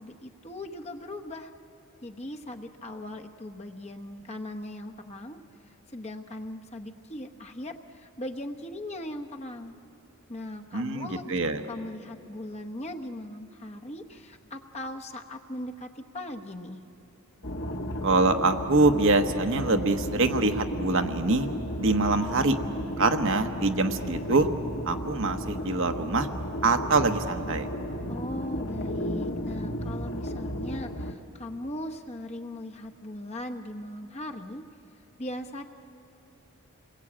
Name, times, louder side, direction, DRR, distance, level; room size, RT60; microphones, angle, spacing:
voice 1, 0.0-1.5 2.0-5.4 5.9-9.8 10.3-11.4 11.7-16.8 28.1-34.6 35.2-35.6, left 1 dB, 30° left, 4 dB, 1.0 m, -39 dB
voice 2, 10.7-11.6 18.0-21.5 21.8-22.6 23.0-24.5 24.8-26.3 26.6-27.7, right 3 dB, 60° right, 6 dB, 1.2 m, -24 dB
sound 1, 17.4-31.1, equal, 55° left, 1.3 m, -34 dB
28.0 x 21.5 x 8.7 m, 2.8 s
head